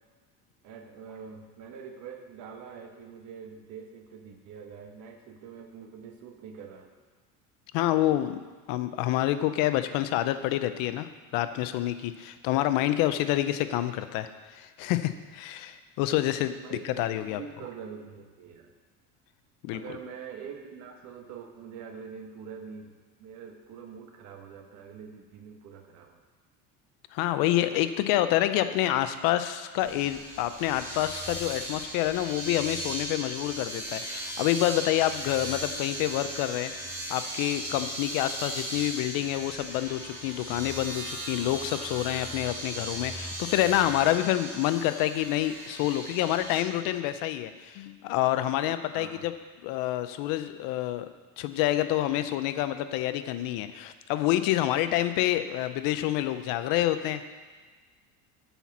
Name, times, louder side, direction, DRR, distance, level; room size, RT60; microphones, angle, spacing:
voice 1, 0.6-6.9 16.6-18.7 19.7-22.9 23.2-26.2 48.9-49.3, right 6 dB, 50° right, 4 dB, 1.2 m, -44 dB
voice 2, 7.7-8.4 8.7-17.4 19.6-19.8 27.1-49.3 49.6-51.1 51.4-57.3, left 13 dB, 65° left, 11 dB, 0.6 m, -28 dB
Domestic sounds home sounds, 29.8-46.6, right 1 dB, 5° right, 2.7 m, -37 dB
7.0 x 5.8 x 7.1 m, 1.4 s
cardioid pair, 150°, 36 cm